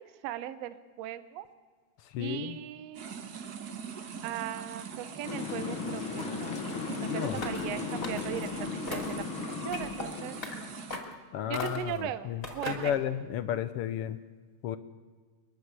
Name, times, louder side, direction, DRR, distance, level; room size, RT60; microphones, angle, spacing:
voice 1, 0.0-1.5 2.2-3.1 4.2-6.6 7.0-9.2 9.6-10.4 11.5-13.0, right 11 dB, 70° right, 13 dB, 1.8 m, -38 dB
voice 2, 2.1-2.6 7.1-7.4 11.3-11.9 12.2-14.2 14.6-14.8, left 10 dB, 75° left, 12 dB, 1.4 m, -32 dB
sound 1, 2.9-11.0, right 6 dB, 50° right, 1.1 m, -42 dB
sound 2, 5.2-10.8, left 5 dB, 50° left, 2.1 m, -36 dB
sound 3, 7.3-7.7 8.0-8.5 8.9-9.2 9.7-10.1 10.4-10.6 10.9-11.2 11.5-12.0 12.4-13.0, left 2 dB, 30° left, 3.0 m, -38 dB
28.5 x 11.0 x 8.2 m, 1.5 s
omnidirectional pair, 3.4 m